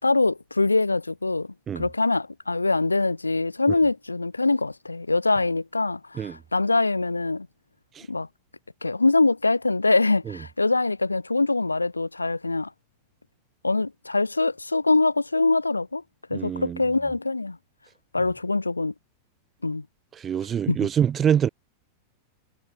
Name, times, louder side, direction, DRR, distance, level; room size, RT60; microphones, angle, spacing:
voice 1, 0.0-1.5 1.8-7.5 8.1-8.3 8.8-12.7 13.6-16.0 16.3-17.6 18.1-18.9 19.6-19.8 20.7-20.9, left 3 dB, 80° left, 4.4 m, -23 dB
voice 2, 16.3-16.8 20.2-21.5, right 8 dB, 25° right, 1.0 m, -25 dB
figure-of-eight pair, 90°, 0 cm